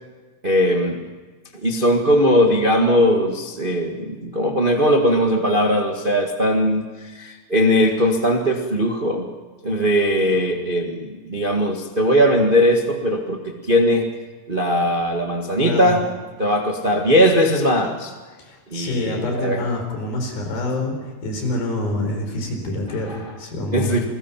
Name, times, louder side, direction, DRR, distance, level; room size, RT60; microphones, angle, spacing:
voice 1, 0.4-1.0 1.6-9.3 9.6-14.1 14.5-16.0 16.4-18.1 18.7-19.6 23.1-23.2 23.7-24.0, equal, 45° right, 2 dB, 0.6 m, -19 dB
voice 2, 15.6-16.0 18.4-24.0, left 2 dB, 75° left, 3 dB, 6.2 m, -26 dB
28.5 x 21.5 x 5.9 m, 1.4 s
omnidirectional pair, 4.2 m